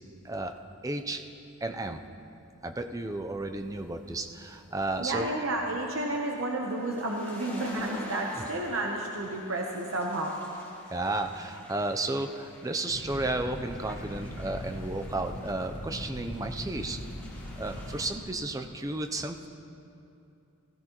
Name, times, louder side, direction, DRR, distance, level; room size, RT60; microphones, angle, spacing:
voice 1, 0.8-1.2 1.6-2.0 2.6-5.3 8.3-8.4 10.9-17.0 17.6-19.5, right 2 dB, 15° right, 6 dB, 0.5 m, -33 dB
sound 1, 3.8-18.1, left 1 dB, 10° left, 2.0 m, -49 dB
voice 2, 5.0-10.4, right 2 dB, 70° right, 1 dB, 0.9 m, -31 dB
Fire, 12.9-18.1, left 1 dB, 60° left, 1.5 m, -40 dB
16.5 x 15.5 x 3.0 m, 2.7 s
head